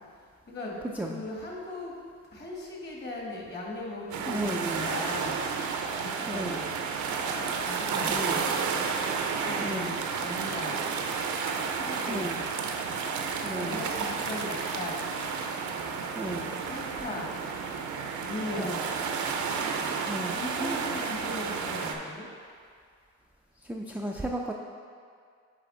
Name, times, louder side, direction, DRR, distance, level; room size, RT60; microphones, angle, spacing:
voice 1, 0.5-1.9 2.3-5.4 6.0-6.6 7.6-8.5 9.4-10.9 11.6-12.4 13.5-15.1 16.3-17.4 18.2-18.8 20.3-22.3, left 1 dB, 35° left, -2 dB, 1.5 m, -38 dB
sound 1, 4.1-22.0, right 5 dB, 70° right, 0.6 m, -31 dB
voice 2, 4.3-4.9 6.3-6.6 8.1-8.5 9.6-10.0 12.1-12.4 13.4-13.8 16.2-16.5 18.5-18.9 20.1-20.8 23.6-24.5, right 1 dB, 5° right, -1 dB, 0.3 m, -34 dB
8.0 x 3.4 x 3.8 m, 2.2 s
cardioid pair, 90°, 30 cm